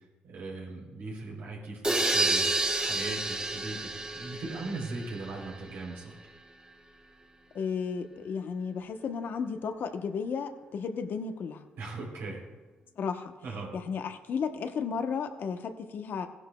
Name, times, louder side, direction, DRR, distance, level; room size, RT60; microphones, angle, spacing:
voice 1, 0.2-6.1 11.8-12.4 13.4-13.7, right 3 dB, 85° right, -2 dB, 3.3 m, -39 dB
sound 1, 1.8-5.6, right 2 dB, 25° right, 1.7 m, -30 dB
voice 2, 7.5-11.6 13.0-13.3 13.7-16.3, left 6 dB, 65° left, 7 dB, 0.8 m, -33 dB
16.0 x 11.0 x 2.3 m, 1.3 s
supercardioid pair, 65°, 4 cm